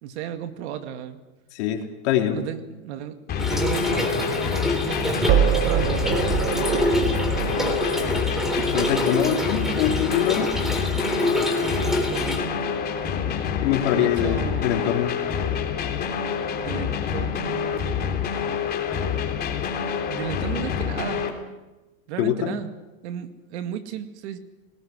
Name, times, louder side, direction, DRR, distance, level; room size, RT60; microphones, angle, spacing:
voice 1, 0.0-1.2 2.3-5.3 5.6-6.1 6.6-7.2 7.5-8.2 11.6-12.5 13.9-14.9 16.6-18.3 20.1-21.2 22.1-22.7 23.0-24.4, right 10 dB, 55° right, 8 dB, 2.2 m, -34 dB
voice 2, 1.5-2.4 8.7-10.5 13.6-15.1 22.2-22.6, left 11 dB, 55° left, 2 dB, 3.9 m, -24 dB
sound 1, 3.3-21.3, left 7 dB, 25° left, 3.6 m, -27 dB
Trickle dribble / Fill (with liquid), 3.4-12.4, left 1 dB, ahead, 3.4 m, -27 dB
sound 2, 3.4-14.5, right 10 dB, 25° right, 0.8 m, -29 dB
28.5 x 19.5 x 6.4 m, 1.1 s
hypercardioid pair, 135°, 41 cm